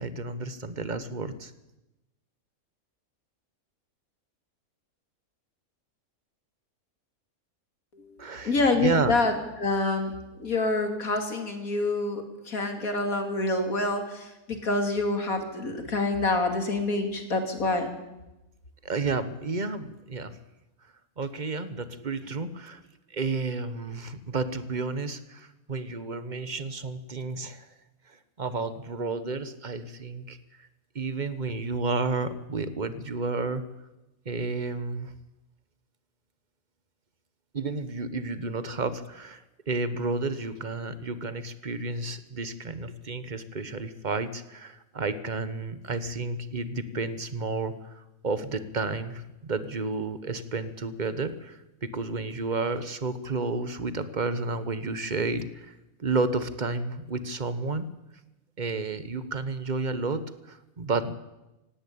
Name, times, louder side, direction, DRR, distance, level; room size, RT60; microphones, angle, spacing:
voice 1, 0.0-1.5 8.2-9.1 18.8-20.4 21.2-22.8 23.1-27.7 28.1-30.4 30.9-33.6 34.2-35.1 37.5-57.9 58.6-61.1, right 3 dB, 35° right, 12 dB, 1.3 m, -31 dB
voice 2, 8.4-9.3 9.6-10.1 10.4-17.9, left 2 dB, 70° left, 5 dB, 3.1 m, -27 dB
17.5 x 17.5 x 8.7 m, 0.98 s
omnidirectional pair, 1.5 m